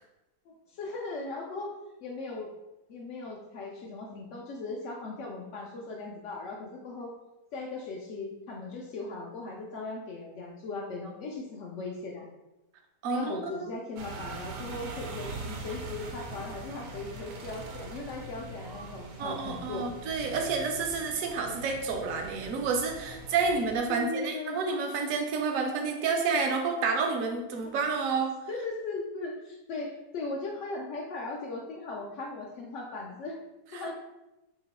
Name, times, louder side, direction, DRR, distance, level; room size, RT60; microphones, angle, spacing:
voice 1, 0.5-1.7 2.0-2.5 2.9-7.1 7.5-12.3 13.1-19.9 23.9-24.6 28.5-33.4 33.7-33.9, left 3 dB, 70° left, -2 dB, 0.7 m, -38 dB
voice 2, 13.0-13.7 19.2-28.3 33.7-33.8, right 4 dB, 65° right, 2 dB, 0.9 m, -29 dB
sound 1, 14.0-23.8, right 3 dB, 85° right, 1.2 m, -42 dB
3.0 x 2.8 x 4.0 m, 0.97 s
omnidirectional pair, 1.7 m